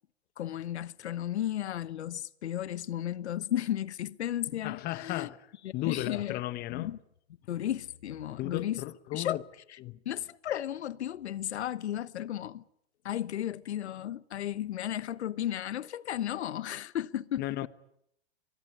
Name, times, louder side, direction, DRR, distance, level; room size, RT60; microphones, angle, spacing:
voice 1, 0.4-5.3 5.6-6.4 6.7-7.0 7.5-8.8 9.1-9.4 10.0-12.6 13.0-17.7, left 11 dB, 80° left, 1.1 m, -34 dB
voice 2, 4.6-5.5 5.7-7.0 8.3-9.4 9.8-10.0 17.4-17.7, left 16 dB, 30° left, 1.0 m, -35 dB
24.0 x 21.5 x 9.8 m
hypercardioid pair, 130°, 33 cm